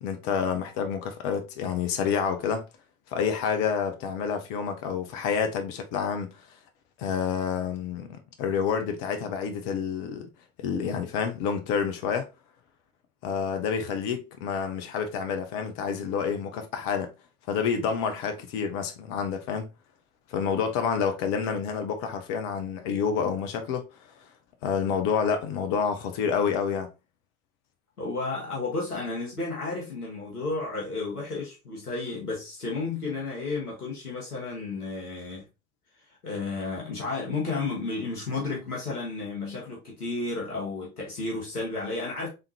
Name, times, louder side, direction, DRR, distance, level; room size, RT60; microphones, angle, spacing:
voice 1, 0.0-2.6 3.1-6.3 7.0-10.3 10.6-12.3 13.2-17.1 17.5-19.7 20.3-23.9 24.6-26.9, left 6 dB, 45° left, 0.9 m, -28 dB
voice 2, 28.0-35.4 36.2-42.3, left 3 dB, 85° left, 1.4 m, -32 dB
3.6 x 3.6 x 2.7 m
figure-of-eight pair, 75°, 44 cm